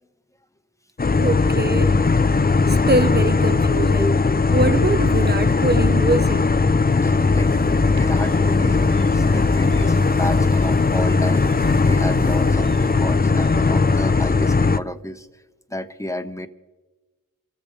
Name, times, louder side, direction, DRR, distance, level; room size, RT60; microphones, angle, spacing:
sound 1, 1.0-14.8, left 4 dB, 25° left, 0.5 m, -18 dB
voice 1, 1.2-2.0 2.7-4.1 4.5-6.5, right 2 dB, 25° right, 1.1 m, -23 dB
voice 2, 4.0-4.4 7.0-7.5 7.9-15.3 15.7-16.5, left 1 dB, 10° left, 1.1 m, -31 dB
sound 2, 7.0-14.0, right 7 dB, 50° right, 0.7 m, -38 dB
27.0 x 14.0 x 3.3 m
cardioid pair, 45°, 36 cm